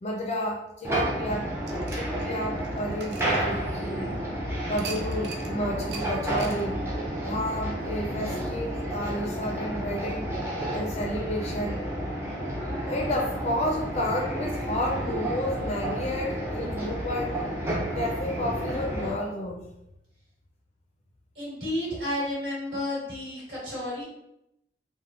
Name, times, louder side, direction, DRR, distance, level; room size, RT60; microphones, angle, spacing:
voice 1, 0.0-4.1 4.7-6.8 7.2-10.3 10.7-11.8 12.9-17.4 17.9-19.7, left 1 dB, 35° left, 0 dB, 0.4 m, -31 dB
sound 1, 0.8-19.1, right 1 dB, 15° right, 0.5 m, -31 dB
sound 2, 1.6-4.0 4.8-5.5 5.9-6.1 6.4-6.6, right 4 dB, 70° right, 0.4 m, -41 dB
voice 2, 21.3-24.0, left 1 dB, 85° right, -6 dB, 1.5 m, -31 dB
3.3 x 2.1 x 2.4 m, 0.83 s
head